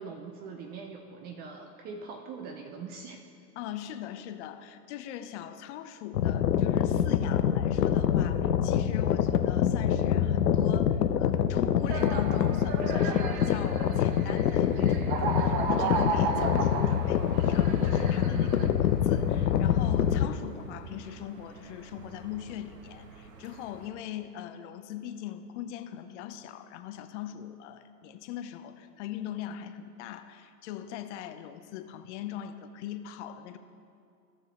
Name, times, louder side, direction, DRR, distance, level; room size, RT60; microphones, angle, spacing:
voice 1, 0.0-3.2, right 4 dB, 20° right, 4 dB, 0.4 m, -42 dB
voice 2, 3.6-33.6, left 10 dB, 45° left, 9 dB, 0.7 m, -40 dB
sound 1, 6.1-20.3, left 9 dB, 85° left, 0.7 m, -25 dB
sound 2, 11.8-18.7, right 5 dB, 40° right, 1.0 m, -34 dB
Aircraft / Engine, 15.3-23.9, right 4 dB, 80° right, 1.3 m, -47 dB
14.5 x 6.5 x 3.7 m, 2.5 s
hypercardioid pair, 105°, 48 cm